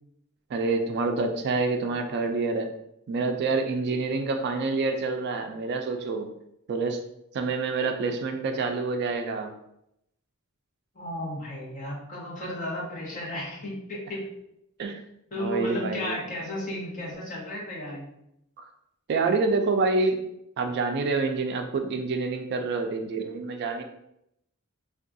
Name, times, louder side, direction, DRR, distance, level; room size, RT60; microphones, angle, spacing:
voice 1, 0.5-2.7 3.1-6.3 6.7-7.0 7.3-9.5 14.8-15.0 15.4-16.2 19.1-20.2 20.6-23.8, right 3 dB, 50° right, 5 dB, 0.3 m, -27 dB
voice 2, 10.9-14.3 15.3-18.1, left 1 dB, 40° left, -4 dB, 0.9 m, -34 dB
3.5 x 2.3 x 2.6 m, 0.79 s
head